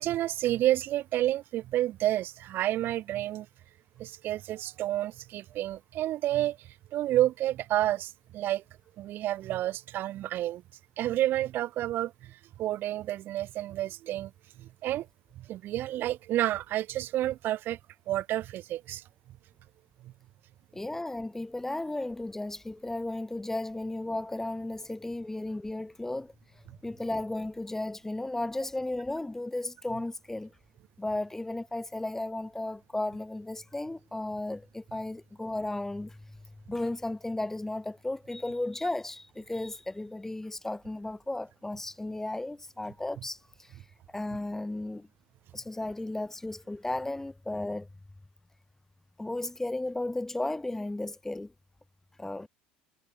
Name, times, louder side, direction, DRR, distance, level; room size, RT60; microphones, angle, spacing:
voice 1, 0.0-3.5 4.0-6.6 6.9-8.6 9.0-10.6 11.0-14.3 14.6-15.1 15.4-17.8 18.1-19.0 20.0-20.1, right 14 dB, 50° right, 0.9 m, -30 dB
voice 2, 20.7-26.3 26.8-30.5 31.0-36.4 36.7-43.7 44.1-45.1 45.5-47.9 49.2-51.5 52.2-52.5, left 2 dB, 10° left, 1.1 m, -34 dB
hypercardioid pair, 80°, 4 cm